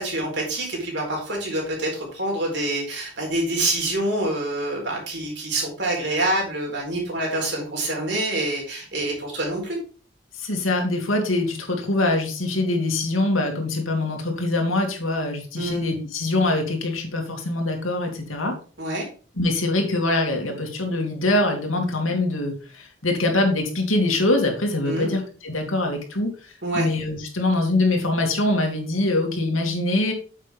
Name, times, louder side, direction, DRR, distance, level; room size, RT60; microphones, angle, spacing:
voice 1, 0.0-9.8 15.6-15.8 18.8-19.1 24.8-25.1 26.6-26.9, right 1 dB, 60° right, 0 dB, 4.2 m, -26 dB
voice 2, 10.3-18.6 19.4-30.1, left 2 dB, 90° left, 3 dB, 2.7 m, -23 dB
8.9 x 7.5 x 3.6 m, 0.38 s
head